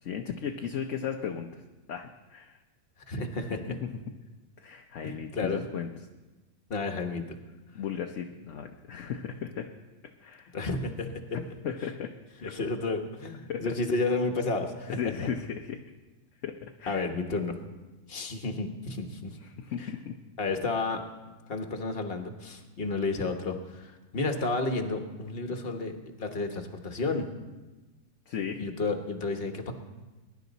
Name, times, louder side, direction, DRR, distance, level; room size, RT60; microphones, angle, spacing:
voice 1, 0.0-1.5 1.9-2.6 3.8-3.9 4.6-5.9 7.7-9.7 10.2-10.5 11.6-12.1 13.5-13.7 14.9-15.8 16.4-17.1 19.6-20.2 28.3-28.6, left 7 dB, 60° left, 3 dB, 1.0 m, -35 dB
voice 2, 3.1-3.8 5.0-5.6 6.7-7.4 10.5-11.4 12.4-15.0 16.9-17.6 18.1-19.3 19.8-19.9 20.4-21.0 21.5-27.3 28.6-29.7, left 3 dB, 40° left, 5 dB, 1.3 m, -31 dB
21.0 x 11.0 x 4.0 m, 1.2 s
omnidirectional pair, 1.7 m